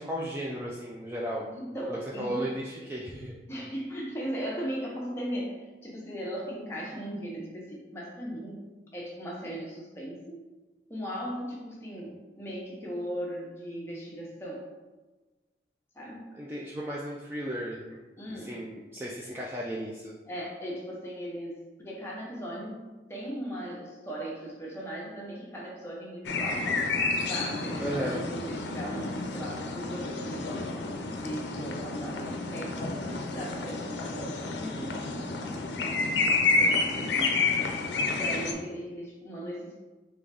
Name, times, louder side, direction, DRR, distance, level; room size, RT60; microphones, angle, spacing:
voice 1, 0.0-1.5 1.9-3.3 16.3-18.0 18.3-20.1 27.8-28.2, equal, 10° right, -4 dB, 0.3 m, -35 dB
voice 2, 1.5-2.5 3.5-8.7 8.9-10.4 10.9-14.6 15.9-16.3 18.2-18.6 20.3-26.8 27.3-30.7 31.2-36.3 36.6-37.7 38.1-39.8, equal, 15° left, -4 dB, 0.9 m, -38 dB
sound 1, 26.2-38.5, left 3 dB, 75° left, 0.5 m, -30 dB
3.8 x 3.3 x 3.4 m, 1.2 s
head